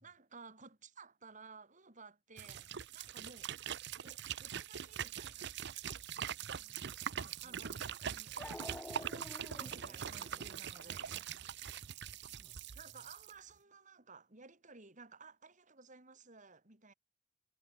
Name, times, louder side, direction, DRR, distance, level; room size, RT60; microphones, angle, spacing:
voice 1, 0.0-3.5 4.0-5.5 7.4-11.3 12.8-16.9, right 4 dB, 40° right, 3.1 m, -57 dB
sound 1, 2.4-13.3, right 8 dB, 55° right, 0.7 m, -43 dB
voice 2, 6.4-6.9 7.2-7.8 12.2-13.1, equal, 15° right, 7.5 m, -68 dB
Dog, 7.3-7.4 8.4-11.8, left 2 dB, 10° left, 0.3 m, -50 dB
head